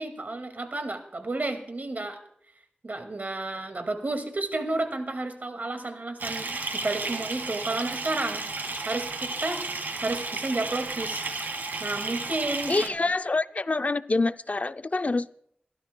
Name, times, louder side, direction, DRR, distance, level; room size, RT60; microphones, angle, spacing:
voice 1, 0.0-2.2 2.8-8.5 8.9-9.7 10.0-11.3 11.8-12.9, right 2 dB, 60° right, 2.1 m, -31 dB
Bathtub (filling or washing) / Fill (with liquid), 6.2-12.9, right 3 dB, 85° right, 1.8 m, -33 dB
voice 2, 12.7-15.5, left 3 dB, 50° left, 0.5 m, -26 dB
27.0 x 13.0 x 2.3 m
wide cardioid pair, 50°, 3 cm